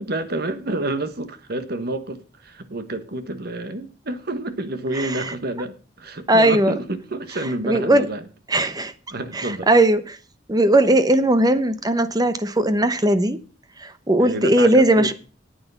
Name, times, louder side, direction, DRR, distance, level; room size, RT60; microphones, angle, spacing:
voice 1, 0.0-8.3 9.1-9.7 14.2-15.1, right 2 dB, 55° right, 1.4 m, -29 dB
voice 2, 4.9-5.3 6.3-6.7 7.6-8.1 8.5-8.9 9.3-10.2 10.5-13.4 13.8-15.1, right 1 dB, 20° right, 0.9 m, -18 dB
9.6 x 8.7 x 6.9 m
head